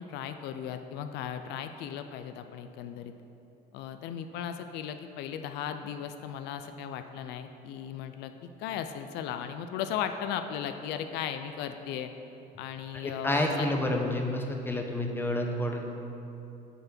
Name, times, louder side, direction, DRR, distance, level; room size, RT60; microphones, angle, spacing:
voice 1, 0.0-3.1 3.7-12.1 12.6-13.7, left 9 dB, 85° left, 8 dB, 0.4 m, -36 dB
voice 2, 12.9-15.9, left 1 dB, 15° left, 2 dB, 0.8 m, -29 dB
9.2 x 3.4 x 5.8 m, 2.9 s
cardioid pair, 110°, 17 cm